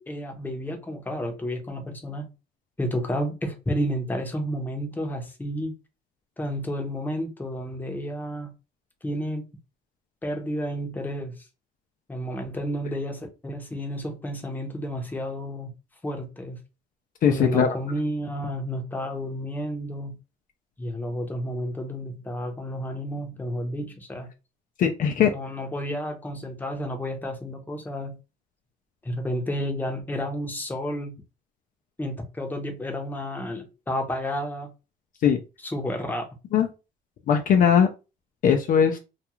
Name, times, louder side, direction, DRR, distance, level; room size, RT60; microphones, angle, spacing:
voice 1, 0.0-2.3 2.8-5.7 6.4-8.5 9.0-9.4 10.2-11.3 12.1-15.7 16.0-16.6 17.3-20.2 20.8-24.3 25.3-28.2 29.0-31.2 32.0-34.7 35.6-36.3, equal, 10° left, 0.7 m, -31 dB
voice 2, 17.2-17.7 24.8-25.3 35.2-35.4 36.5-36.7 37.3-37.9 38.4-39.0, left 8 dB, 55° left, 0.4 m, -19 dB
2.4 x 2.3 x 2.9 m
cardioid pair, 110°, 17 cm